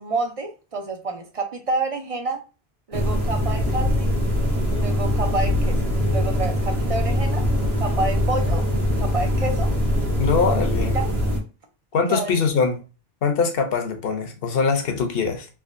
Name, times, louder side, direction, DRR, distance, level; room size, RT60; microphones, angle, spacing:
voice 1, 0.0-2.4 2.9-4.1 4.7-5.8 6.1-7.4 7.8-8.6 9.0-9.7 10.9-11.1 12.1-12.6, right 2 dB, 45° right, 0.5 m, -28 dB
sound 1, 2.9-11.4, left 1 dB, 75° right, 1.3 m, -22 dB
voice 2, 10.2-11.0 11.9-12.8 13.2-15.5, left 5 dB, 65° left, 0.9 m, -22 dB
3.6 x 2.9 x 2.5 m
omnidirectional pair, 1.1 m